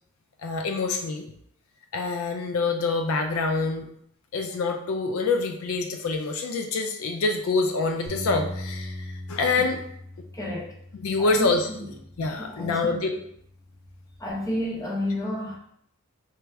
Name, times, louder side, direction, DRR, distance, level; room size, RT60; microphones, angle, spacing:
voice 1, 0.4-1.3 1.9-3.9 4.3-9.8 11.0-11.7 12.2-13.2, left 3 dB, 65° left, 4 dB, 0.4 m, -26 dB
Bass guitar, 8.1-12.5 13.1-14.3, left 1 dB, 20° right, 0.8 m, -40 dB
voice 2, 10.3-10.8 11.2-11.5 11.8-11.9 12.4-13.0 14.2-15.6, left 1 dB, 15° left, -3 dB, 0.6 m, -31 dB
4.4 x 2.0 x 3.4 m, 0.69 s
head